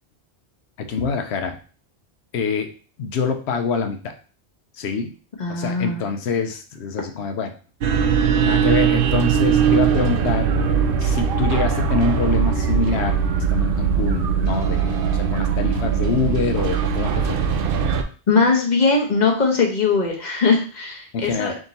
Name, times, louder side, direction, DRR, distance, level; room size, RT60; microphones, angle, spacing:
voice 1, 0.8-1.6 2.3-2.7 3.0-4.1 4.8-5.1 5.5-7.6 8.4-10.5 11.0-13.2 13.5-17.4 21.1-21.6, left 5 dB, 75° left, 7 dB, 0.9 m, -25 dB
voice 2, 5.4-6.1 18.3-21.5, left 4 dB, 45° left, 0 dB, 1.0 m, -20 dB
sound 1, 7.8-18.0, right 7 dB, 60° right, 0.7 m, -20 dB
3.7 x 2.7 x 4.0 m, 0.38 s
omnidirectional pair, 1.1 m